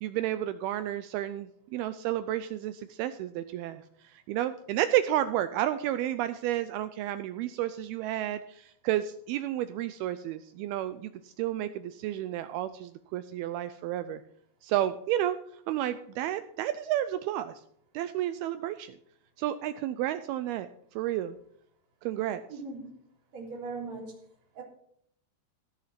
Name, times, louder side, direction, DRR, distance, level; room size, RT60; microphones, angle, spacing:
voice 1, 0.0-14.2 14.6-17.6 17.9-19.0 19.4-21.4 22.0-22.6, right 12 dB, 85° right, 12 dB, 2.2 m, -31 dB
voice 2, 22.5-22.9 23.3-24.1 24.5-24.6, right 3 dB, 40° right, -2 dB, 4.4 m, -39 dB
16.0 x 6.7 x 5.8 m, 0.70 s
omnidirectional pair, 5.0 m